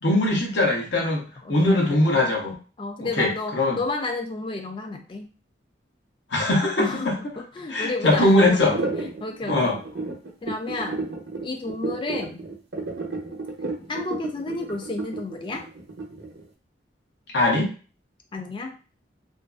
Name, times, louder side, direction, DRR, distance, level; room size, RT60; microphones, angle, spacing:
voice 1, 0.0-2.5 3.2-3.8 6.3-7.1 7.7-8.8 9.5-9.8 17.3-17.7, left 1 dB, 80° left, -1 dB, 0.8 m, -21 dB
voice 2, 1.4-1.8 2.8-5.3 6.8-9.8 10.4-11.0 11.4-12.4 13.9-15.7 18.3-18.7, left 2 dB, 25° left, 4 dB, 0.3 m, -31 dB
sound 1, 8.6-16.4, right 3 dB, 70° right, 0.7 m, -32 dB
2.5 x 2.3 x 2.3 m, 0.37 s
head